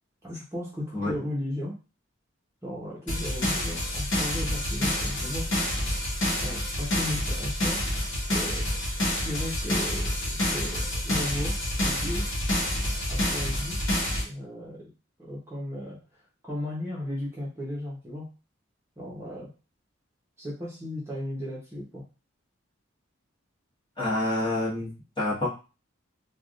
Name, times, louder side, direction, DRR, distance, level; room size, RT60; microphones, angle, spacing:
voice 1, 0.2-1.7 2.6-5.5 6.4-7.8 8.2-8.7 9.2-12.2 13.1-13.8 14.2-14.9 15.2-16.0 16.4-18.3 19.0-19.5 20.4-22.0, left 1 dB, 15° right, -6 dB, 0.9 m, -35 dB
sound 1, 3.1-14.2, left 1 dB, 65° left, 1.2 m, -28 dB
voice 2, 24.0-24.9 25.2-25.5, left 1 dB, 25° left, -8 dB, 1.3 m, -27 dB
3.4 x 2.4 x 2.5 m, 0.33 s
head